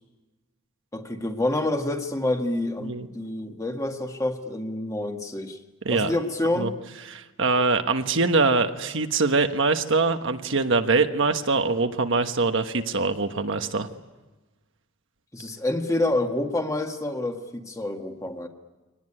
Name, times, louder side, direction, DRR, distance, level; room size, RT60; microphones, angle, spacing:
voice 1, 0.9-5.6 5.9-6.7 15.3-18.5, left 1 dB, 15° left, 4 dB, 1.7 m, -27 dB
voice 2, 7.0-13.9, right 3 dB, 60° right, 7 dB, 1.3 m, -23 dB
24.0 x 19.0 x 9.9 m, 1.2 s
head